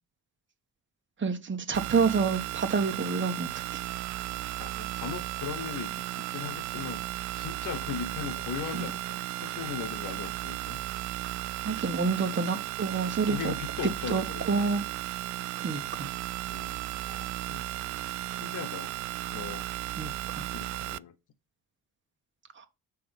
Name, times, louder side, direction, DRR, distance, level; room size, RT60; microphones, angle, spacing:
voice 1, 1.2-3.8 8.7-8.9 11.6-13.5 13.8-14.8 15.6-16.1 20.0-20.5 22.6-22.7, right 5 dB, 30° right, 1.5 m, -28 dB
sound 1, 1.7-21.0, right 17 dB, 45° right, 0.4 m, -35 dB
voice 2, 4.6-10.8 13.3-14.5 16.5-16.7 17.0-17.6 17.9-18.9 19.3-19.7 20.3-21.1, left 8 dB, 45° left, 1.0 m, -39 dB
6.9 x 3.6 x 5.3 m
figure-of-eight pair, 50°, 41 cm